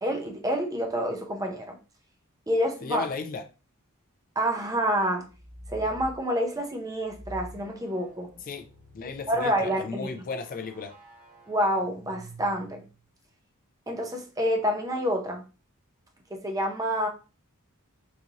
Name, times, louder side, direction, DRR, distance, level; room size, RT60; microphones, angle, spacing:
voice 1, 0.0-1.8 2.5-3.1 4.4-5.3 5.7-8.3 9.3-10.1 11.5-12.8 13.9-15.4 16.3-17.1, equal, 15° right, 0.6 m, -28 dB
voice 2, 2.8-3.4 8.5-8.7 8.9-10.9, left 4 dB, 40° left, 0.4 m, -35 dB
sound 1, 5.2-6.2 7.0-13.0, right 1 dB, 35° right, 1.3 m, -47 dB
3.9 x 2.5 x 2.8 m
head